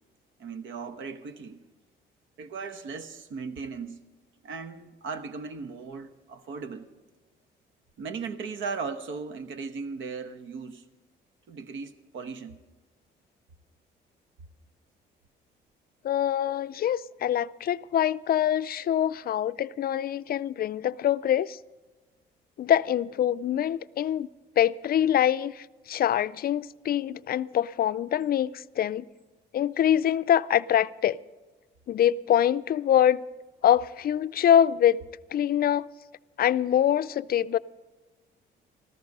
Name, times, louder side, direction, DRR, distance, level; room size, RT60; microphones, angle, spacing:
voice 1, 0.4-1.6 2.4-4.0 4.4-6.9 8.0-10.9 11.5-12.6, right 5 dB, 75° right, 1.1 m, -37 dB
voice 2, 16.0-21.6 22.6-24.3 24.6-29.0 29.5-31.2 31.9-33.2 33.6-35.0 35.3-35.9 36.4-37.6, left 10 dB, 50° left, 0.4 m, -24 dB
14.5 x 14.0 x 5.3 m
cardioid pair, 90°, 20 cm